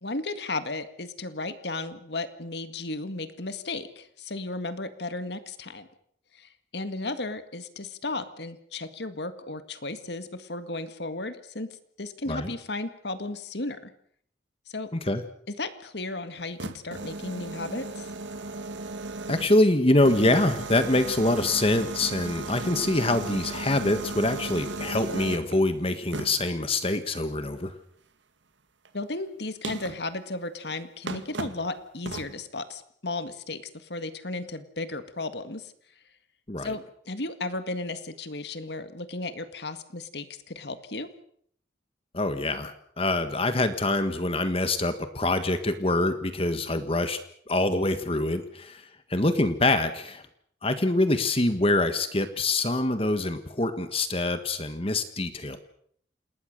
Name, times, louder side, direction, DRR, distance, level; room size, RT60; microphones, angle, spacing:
voice 1, 0.0-5.9 6.4-13.9 14.7-14.9 15.6-18.1 28.9-35.7 36.6-41.1, left 2 dB, 65° left, 11 dB, 1.9 m, -34 dB
sound 1, 16.4-19.6 20.1-25.5 26.1-26.5 28.8-28.9 29.6-30.0 30.7-30.8 31.1-31.6 32.1-32.3, right 3 dB, 85° right, 2.2 m, -36 dB
voice 2, 19.3-27.7 36.5-36.7 42.1-47.2 47.5-50.2 50.6-55.6, left 2 dB, 30° left, 10 dB, 1.6 m, -25 dB
28.0 x 20.0 x 6.7 m, 0.64 s
head